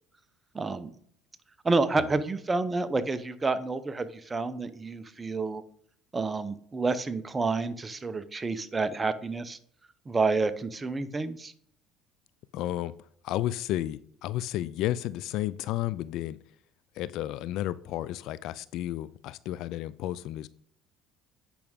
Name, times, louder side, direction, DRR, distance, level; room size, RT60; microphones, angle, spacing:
voice 1, 0.5-0.9 1.6-5.6 6.1-9.6 10.1-11.5, right 3 dB, 20° right, 12 dB, 0.7 m, -29 dB
voice 2, 12.5-12.9 13.2-16.4 16.9-20.5, left 14 dB, 70° left, 18 dB, 0.3 m, -32 dB
8.6 x 5.9 x 3.6 m, 0.64 s
supercardioid pair, 90°, 0 cm